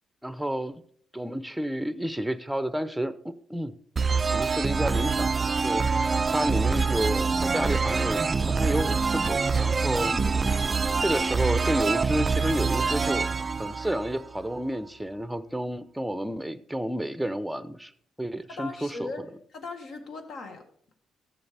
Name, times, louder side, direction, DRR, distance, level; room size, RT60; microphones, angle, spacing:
voice 1, 0.2-0.8 1.1-3.7 4.3-5.3 5.6-10.1 11.0-13.3 13.6-17.9 18.2-19.1, right 1 dB, 5° right, 13 dB, 0.6 m, -30 dB
sound 1, 4.0-14.6, right 4 dB, 30° right, 0.3 m, -25 dB
voice 2, 10.1-10.4 18.5-19.2 19.5-20.6, left 3 dB, 65° left, 4 dB, 1.8 m, -38 dB
14.0 x 6.9 x 3.4 m, 0.62 s
cardioid pair, 90°, 0 cm